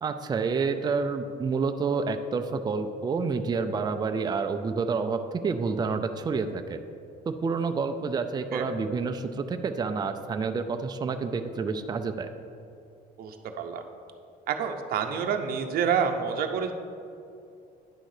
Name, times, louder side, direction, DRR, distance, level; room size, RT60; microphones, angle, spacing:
voice 1, 0.0-6.8 7.3-12.3, right 4 dB, 25° right, 7 dB, 0.4 m, -29 dB
voice 2, 13.2-13.8 14.5-16.7, right 7 dB, 60° right, 4 dB, 0.7 m, -28 dB
9.6 x 3.8 x 6.5 m, 2.6 s
cardioid pair, 110°, 17 cm